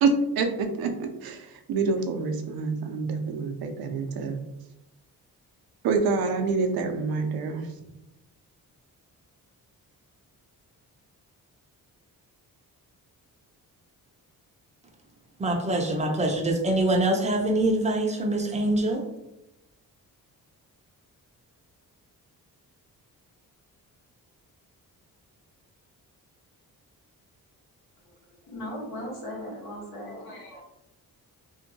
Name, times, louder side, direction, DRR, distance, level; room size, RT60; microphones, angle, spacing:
voice 1, 0.0-4.4 5.8-7.7, right 4 dB, 75° right, 5 dB, 0.5 m, -27 dB
voice 2, 15.4-19.0, right 1 dB, 20° right, 2 dB, 0.5 m, -24 dB
voice 3, 28.5-30.6, equal, 85° left, -3 dB, 1.2 m, -37 dB
2.7 x 2.2 x 2.6 m, 0.88 s
cardioid pair, 95°, 36 cm